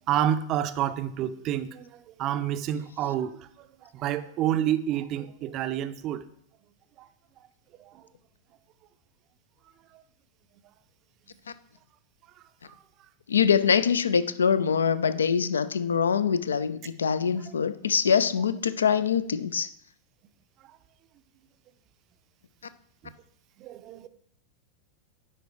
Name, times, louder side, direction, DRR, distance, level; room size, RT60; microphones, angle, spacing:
voice 1, 0.1-3.7 3.9-6.2 7.8-8.0 23.6-24.1, right 11 dB, 35° right, 0.4 m, -29 dB
voice 2, 13.3-19.7, left 7 dB, 70° left, 0.4 m, -24 dB
10.0 x 4.5 x 3.0 m
figure-of-eight pair, 90°, 0 cm